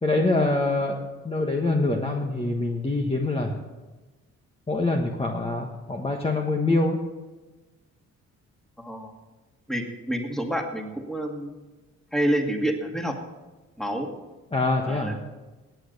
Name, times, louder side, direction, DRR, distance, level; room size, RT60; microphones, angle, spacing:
voice 1, 0.0-3.6 4.7-7.0 14.5-15.2, left 2 dB, 20° left, 1 dB, 1.3 m, -25 dB
voice 2, 8.8-9.1 9.7-11.6 12.1-13.2 13.8-14.1 14.9-15.3, right 1 dB, ahead, 2 dB, 2.1 m, -28 dB
18.5 x 8.6 x 5.4 m, 1.2 s
cardioid pair, 90°, 30 cm